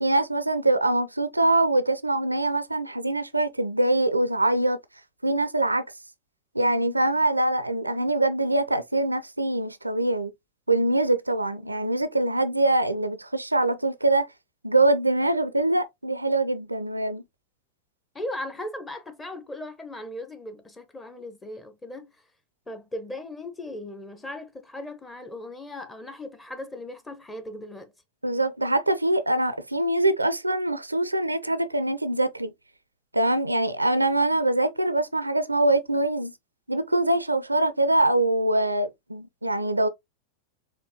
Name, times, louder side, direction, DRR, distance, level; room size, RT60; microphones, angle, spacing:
voice 1, 0.0-4.8 5.2-5.8 6.5-10.3 10.7-14.3 14.6-17.2 28.2-32.5 33.1-36.3 36.7-39.9, right 2 dB, 85° right, 0.4 m, -23 dB
voice 2, 18.1-22.1 22.7-27.9, left 1 dB, 10° left, 0.9 m, -37 dB
4.4 x 3.1 x 2.8 m
figure-of-eight pair, 90°, 0 cm